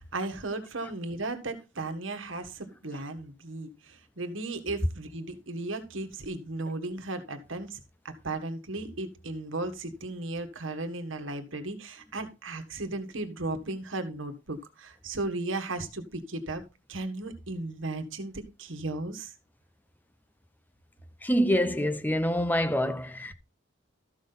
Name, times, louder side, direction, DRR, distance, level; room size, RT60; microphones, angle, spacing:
voice 1, 0.1-7.8 8.0-16.6 16.9-19.3, right 2 dB, 70° right, 1.6 m, -35 dB
voice 2, 21.2-23.3, equal, 10° left, 0.6 m, -26 dB
13.0 x 6.3 x 3.9 m
head